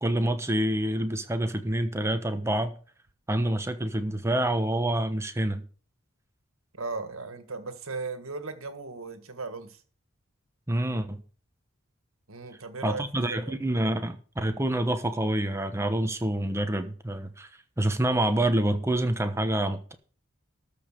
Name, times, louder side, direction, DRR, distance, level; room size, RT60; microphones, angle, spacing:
voice 1, 0.0-2.8 3.3-5.6 10.7-11.2 12.8-17.5 17.8-19.9, right 1 dB, 15° right, 1.0 m, -27 dB
voice 2, 6.7-9.8 12.3-13.6, right 3 dB, 90° right, 1.7 m, -37 dB
13.5 x 5.1 x 6.6 m
head